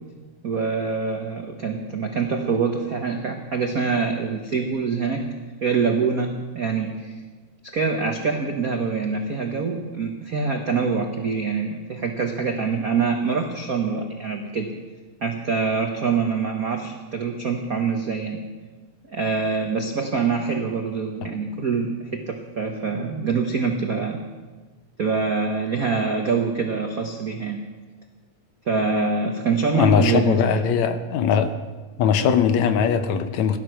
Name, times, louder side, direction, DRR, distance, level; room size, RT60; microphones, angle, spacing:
voice 1, 0.4-5.2 5.6-7.2 7.7-14.7 15.2-18.5 19.1-24.2 25.0-27.6 28.7-30.7, right 5 dB, 85° right, 3 dB, 0.7 m, -25 dB
voice 2, 29.7-31.6 32.0-33.6, left 7 dB, 75° left, 9 dB, 2.1 m, -20 dB
17.0 x 12.0 x 6.4 m, 1.3 s
omnidirectional pair, 3.5 m